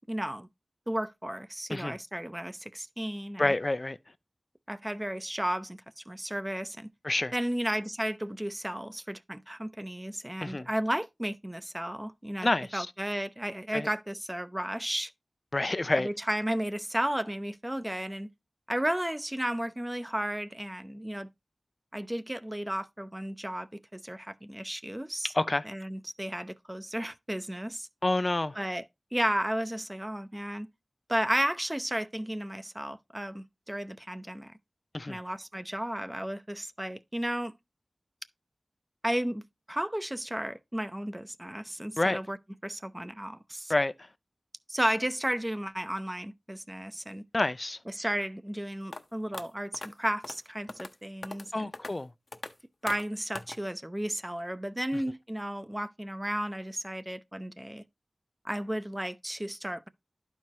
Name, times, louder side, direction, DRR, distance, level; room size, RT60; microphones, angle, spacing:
voice 1, 0.1-0.5 0.9-3.5 4.7-6.9 7.3-15.1 15.9-18.3 18.7-21.3 21.9-25.3 25.6-27.9 28.5-28.8 29.1-30.7 31.1-34.6 35.1-37.5 39.0-39.4 39.7-42.4 42.6-43.7 44.7-47.2 47.9-51.7 52.8-57.8 58.4-59.9, right 1 dB, 15° right, 0.5 m, -33 dB
voice 2, 3.4-4.0 7.0-7.3 10.4-10.7 12.4-12.9 13.7-13.9 15.5-16.1 25.3-25.6 28.0-28.6 34.9-35.2 42.0-42.2 43.7-43.9 47.3-47.8 51.5-52.1, left 2 dB, 40° left, 0.3 m, -28 dB
sound 1, 48.9-49.0 49.3-49.4 49.7-49.9 50.2-50.4 50.7-50.9 51.2-51.5 51.7-51.9 52.3-52.5 52.9-53.0 53.3-53.6, left 2 dB, 65° left, 0.7 m, -39 dB
11.5 x 4.6 x 2.9 m
wide cardioid pair, 60°, 0 cm